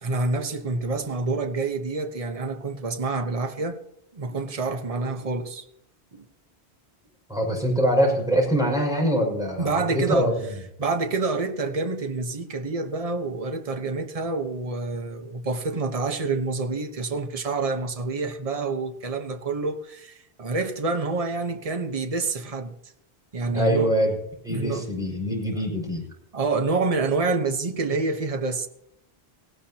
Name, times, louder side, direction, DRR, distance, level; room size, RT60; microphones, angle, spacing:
voice 1, 0.0-3.8 4.1-5.7 6.1-6.3 9.6-10.3 10.8-22.7 23.3-23.9 24.5-24.9 26.3-28.7, right 3 dB, 35° right, 1.2 m, -27 dB
voice 2, 7.3-10.3 23.5-24.1 24.4-26.0, equal, 5° right, 6.3 m, -23 dB
19.0 x 17.5 x 2.9 m
omnidirectional pair, 1.1 m